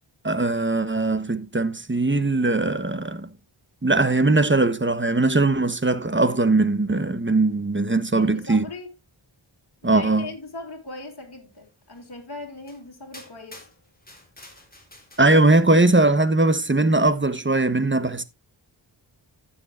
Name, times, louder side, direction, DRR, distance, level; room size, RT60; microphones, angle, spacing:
voice 1, 0.2-3.3 3.8-8.6 9.8-10.3 15.2-18.2, right 2 dB, 25° right, 1.1 m, -20 dB
voice 2, 8.1-8.9 9.8-13.7, left 2 dB, 50° left, 2.8 m, -39 dB
sound 1, 11.9-12.0 12.7-12.8 13.1-15.6, left 1 dB, 20° left, 3.7 m, -48 dB
15.5 x 7.1 x 2.5 m
wide cardioid pair, 50°, 48 cm